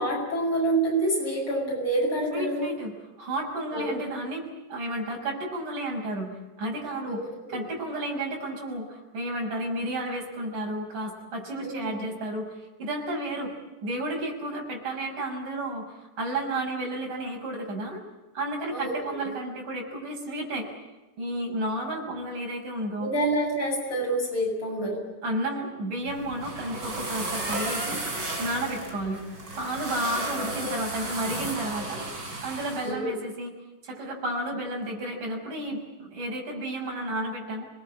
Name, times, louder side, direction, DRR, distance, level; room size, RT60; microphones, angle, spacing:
voice 1, 0.0-2.7 3.7-4.0 7.1-7.6 11.6-11.9 18.7-19.3 23.0-25.0 32.8-33.1, right 1 dB, 40° left, -1 dB, 9.0 m, -27 dB
voice 2, 2.3-4.4 4.7-13.5 13.8-18.0 18.3-20.7 21.2-23.1 25.2-28.0 28.4-29.2 29.6-32.1 32.4-33.5 33.8-37.7, right 1 dB, 75° right, 0 dB, 7.6 m, -32 dB
sound 1, 26.1-32.9, right 2 dB, 30° right, 5.0 m, -34 dB
25.5 x 21.0 x 8.6 m, 1.1 s
omnidirectional pair, 3.7 m